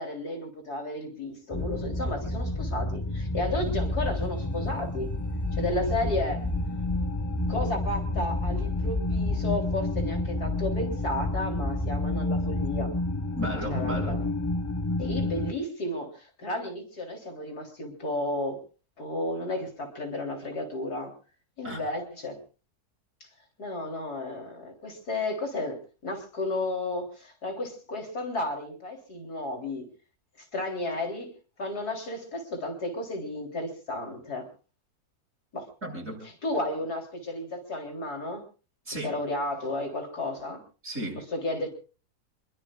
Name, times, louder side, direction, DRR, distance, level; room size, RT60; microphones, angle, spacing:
voice 1, 0.0-5.1 5.5-6.4 7.5-12.9 13.7-14.2 15.0-18.6 19.0-21.1 21.6-22.4 23.2-23.3 23.6-29.8 30.4-31.3 31.6-34.4 35.5-35.7 36.4-38.4 39.0-40.6 41.3-41.7, left 1 dB, 75° left, 2 dB, 4.1 m, -33 dB
sound 1, 1.5-15.5, left 2 dB, 20° left, 0.5 m, -29 dB
voice 2, 13.4-14.2 21.6-21.8 35.8-36.2 38.9-39.2 40.8-41.2, right 1 dB, 55° right, -1 dB, 7.8 m, -34 dB
27.0 x 22.0 x 2.5 m, 0.36 s
omnidirectional pair, 1.7 m